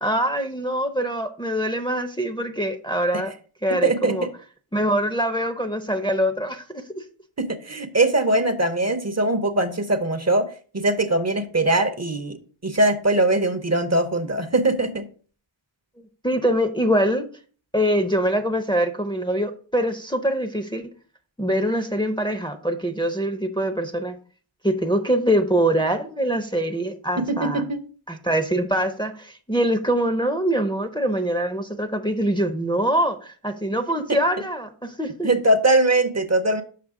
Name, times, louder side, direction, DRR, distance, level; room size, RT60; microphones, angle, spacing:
voice 1, 0.0-3.3 3.6-4.3 4.7-7.0 16.2-17.3 17.7-20.9 21.4-24.2 24.6-27.6 28.1-35.3, right 1 dB, 10° left, 7 dB, 0.6 m, -24 dB
voice 2, 3.8-4.3 7.4-12.4 12.6-15.1 27.2-27.8 34.1-34.2 35.2-36.6, right 2 dB, 30° right, 9 dB, 0.7 m, -21 dB
6.6 x 5.4 x 3.6 m, 0.41 s
wide cardioid pair, 40°, 50 cm